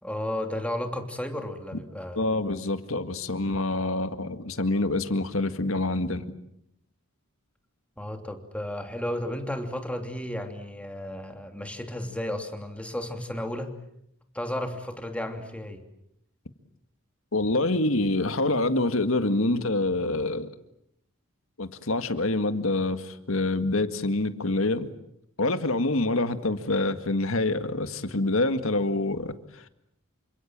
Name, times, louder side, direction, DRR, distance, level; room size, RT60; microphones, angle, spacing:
voice 1, 0.0-2.2 8.0-13.7 14.3-15.8, left 1 dB, 5° left, 2.9 m, -33 dB
voice 2, 2.2-6.3 17.3-20.5 21.6-24.9 25.4-29.7, left 2 dB, 70° left, 1.9 m, -26 dB
28.5 x 26.0 x 7.5 m
head